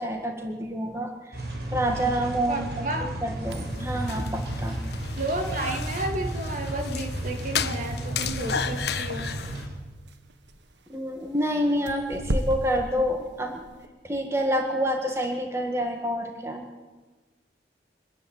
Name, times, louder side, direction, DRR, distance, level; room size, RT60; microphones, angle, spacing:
voice 1, 0.0-1.4 1.7-4.8 10.9-13.7 14.0-16.7, equal, 15° right, 2 dB, 1.9 m, -28 dB
sound 1, 1.3-9.7, right 1 dB, 70° right, 6.4 m, -33 dB
voice 2, 2.5-3.1 5.2-9.3, right 2 dB, 45° right, 3 dB, 2.6 m, -32 dB
sound 2, 3.4-13.9, right 1 dB, 90° right, 1.6 m, -38 dB
sound 3, 3.5-9.7, left 7 dB, 70° left, 1.2 m, -34 dB
25.0 x 14.0 x 9.7 m, 1.3 s
head